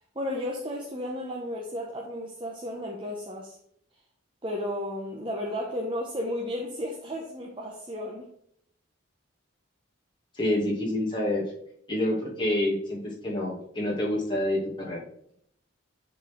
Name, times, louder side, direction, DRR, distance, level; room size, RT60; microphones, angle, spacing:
voice 1, 0.1-3.6 4.4-8.3, left 1 dB, 25° right, -1 dB, 0.9 m, -33 dB
voice 2, 10.4-11.4 11.9-15.0, left 1 dB, 20° left, -4 dB, 2.4 m, -27 dB
9.4 x 4.3 x 3.7 m, 0.68 s
head